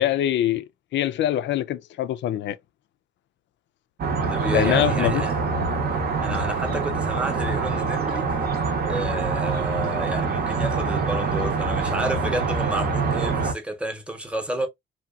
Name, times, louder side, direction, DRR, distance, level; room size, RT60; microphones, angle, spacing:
voice 1, 0.0-2.6 4.5-5.2, left 12 dB, 70° left, 0.4 m, -24 dB
sound 1, 4.0-13.5, right 4 dB, 50° right, 0.7 m, -25 dB
voice 2, 4.3-5.4 6.2-8.3 8.9-14.7, right 1 dB, 5° right, 0.8 m, -30 dB
2.8 x 2.3 x 2.3 m
cardioid pair, 90°, 20 cm